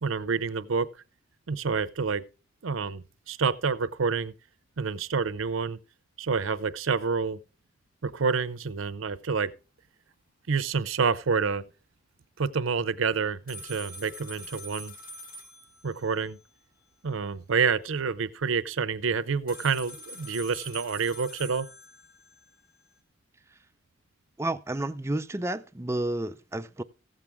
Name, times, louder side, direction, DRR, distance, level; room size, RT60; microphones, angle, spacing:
voice 1, 0.0-0.9 1.5-2.2 2.6-4.3 4.8-5.8 6.2-7.4 8.0-9.5 10.5-11.6 12.4-14.9 15.8-16.4 17.0-21.7, right 5 dB, 85° right, 0.6 m, -28 dB
sound 1, 13.5-16.9 19.5-22.9, equal, 45° left, 1.8 m, -45 dB
voice 2, 24.4-26.8, right 1 dB, 15° right, 0.4 m, -31 dB
15.5 x 7.4 x 3.5 m
head